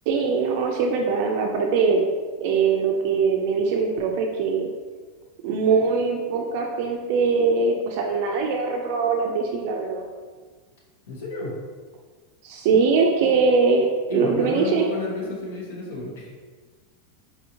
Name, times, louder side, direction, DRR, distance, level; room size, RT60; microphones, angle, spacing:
voice 1, 0.1-2.0 2.4-4.7 5.4-10.0 12.4-14.8, right 5 dB, 50° right, 1 dB, 0.3 m, -22 dB
voice 2, 11.1-11.5 12.7-12.9 14.1-16.3, left 2 dB, 75° left, -3 dB, 1.0 m, -31 dB
4.0 x 2.6 x 2.9 m, 1.5 s
supercardioid pair, 170°, 0 cm